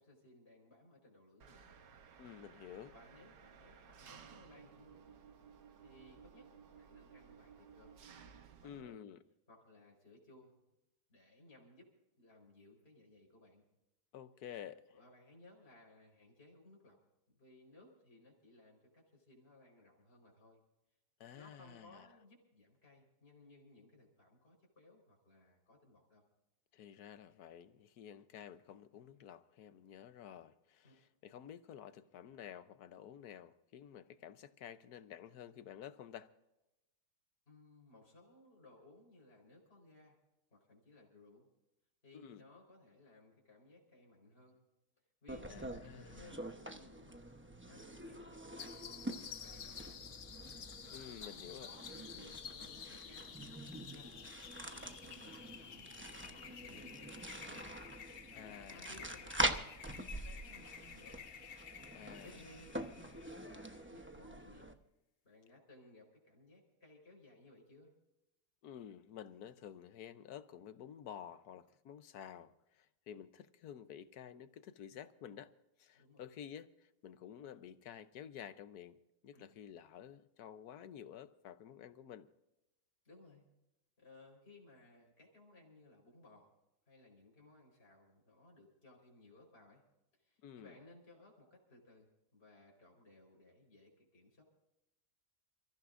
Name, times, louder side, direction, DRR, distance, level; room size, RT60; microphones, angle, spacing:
voice 1, 0.0-1.8 2.9-5.2 5.8-8.0 8.6-9.0 9.5-10.6 11.1-13.6 14.9-17.0 17.3-20.6 21.3-26.2 30.8-31.0 37.5-40.2 40.5-41.5 42.0-44.6 45.2-47.3 47.6-50.0 50.5-53.4 53.7-54.2 54.6-57.7 58.3-61.2 62.2-64.7 65.2-67.9 75.9-76.2 79.3-79.6 83.0-83.4 84.0-86.5 86.9-89.8 90.1-92.1 92.3-94.4, left 2 dB, 35° left, 4.6 m, -61 dB
Engine, 1.4-8.8, right 6 dB, 85° right, 1.7 m, -58 dB
voice 2, 2.2-2.9 8.6-9.2 14.1-15.0 21.2-22.1 26.7-36.3 42.1-42.4 45.5-46.3 50.9-51.7 58.3-59.0 61.9-62.6 68.6-75.5 75.8-82.3 90.4-90.8, left 9 dB, 70° left, 1.3 m, -51 dB
sound 1, 45.3-64.7, right 1 dB, 10° right, 0.5 m, -45 dB
sound 2, 48.6-63.8, left 8 dB, 55° left, 0.7 m, -52 dB
29.5 x 15.0 x 2.5 m
omnidirectional pair, 1.8 m